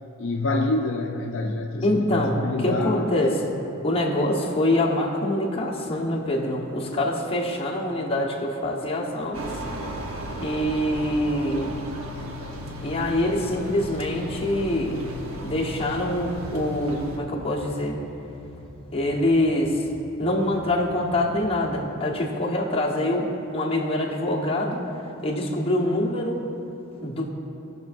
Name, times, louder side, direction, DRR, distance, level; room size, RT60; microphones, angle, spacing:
voice 1, 0.2-3.4, left 2 dB, 60° left, 1 dB, 0.5 m, -27 dB
voice 2, 1.8-3.5 3.8-9.5 10.4-11.8 12.2-12.3 12.8-15.0 15.4-18.0 18.9-19.8 20.2-24.8 25.2-26.4 27.0-27.3, left 1 dB, 30° left, -3 dB, 1.2 m, -25 dB
sound 1, 9.3-17.2, equal, 85° right, 1.0 m, -35 dB
sound 2, 12.6-22.0, left 1 dB, 5° left, 1.0 m, -44 dB
17.5 x 6.0 x 2.6 m, 3.0 s
head